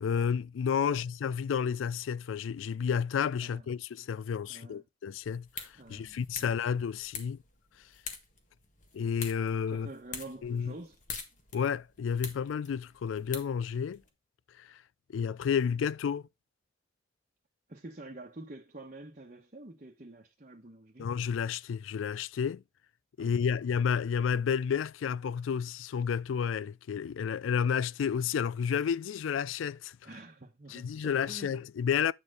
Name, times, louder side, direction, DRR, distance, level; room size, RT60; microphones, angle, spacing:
voice 1, 0.0-7.4 8.9-9.9 10.4-10.7 11.5-14.0 14.6-14.8 15.1-16.2 21.0-22.6 23.2-30.0 30.7-32.1, left 7 dB, 90° left, 0.3 m, -31 dB
voice 2, 4.5-4.8 5.8-6.6 9.7-11.0 17.7-21.1 23.2-23.4 30.0-31.6, right 2 dB, 40° right, 1.0 m, -47 dB
sound 1, 5.2-14.1, left 5 dB, 40° left, 1.5 m, -46 dB
8.6 x 4.4 x 4.7 m
head